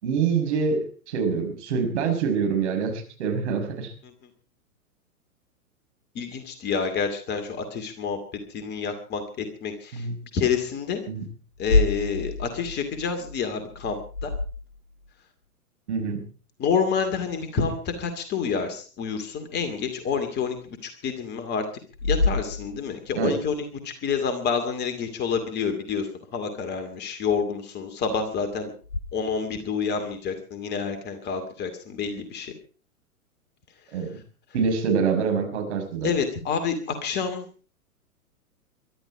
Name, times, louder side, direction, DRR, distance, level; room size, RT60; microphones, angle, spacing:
voice 1, 0.0-3.9 9.9-10.2 11.1-11.2 15.9-16.2 23.2-23.4 33.9-34.2 34.5-36.1, right 5 dB, 50° right, 4 dB, 6.0 m, -25 dB
voice 2, 6.1-8.2 8.5-10.1 10.3-11.0 11.6-14.3 16.6-21.7 22.0-28.7 29.1-32.5 33.9-34.0 36.0-37.4, left 6 dB, 20° left, 7 dB, 2.4 m, -28 dB
sound 1, 11.5-15.1 19.6-19.7 20.5-20.7 21.9-23.2 28.8-29.0, left 3 dB, 70° left, 1.7 m, -27 dB
22.5 x 12.5 x 4.8 m, 0.39 s
figure-of-eight pair, 110°, 45 cm